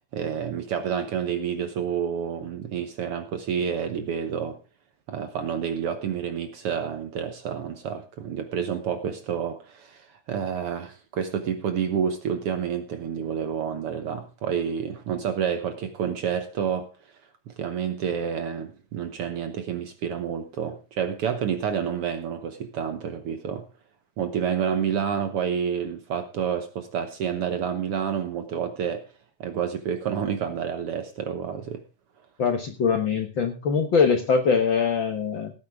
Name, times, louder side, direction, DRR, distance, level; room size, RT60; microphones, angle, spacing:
voice 1, 0.1-4.6 5.1-16.9 17.5-23.6 24.2-29.1 29.4-31.8, right 8 dB, 60° right, 9 dB, 1.7 m, -29 dB
voice 2, 32.4-35.5, left 5 dB, 55° left, 6 dB, 1.5 m, -23 dB
17.0 x 9.5 x 3.5 m, 0.32 s
omnidirectional pair, 3.5 m